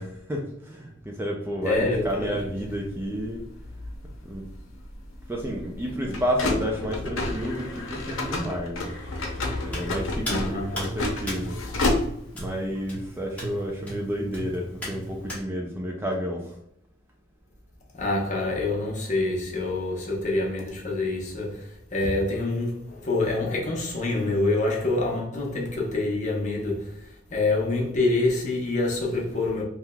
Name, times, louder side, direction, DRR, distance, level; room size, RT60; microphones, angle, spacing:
voice 1, 0.0-3.4 4.3-4.5 5.3-8.9 9.6-11.6 12.3-16.5, equal, 10° right, 0.3 m, -31 dB
voice 2, 1.6-2.4 10.2-11.0 17.9-29.6, left 2 dB, 40° left, 0.8 m, -26 dB
sound 1, 1.7-12.5, left 2 dB, 85° left, 0.7 m, -31 dB
Hands, 9.7-15.4, equal, 10° left, 1.0 m, -38 dB
3.5 x 2.8 x 2.2 m
head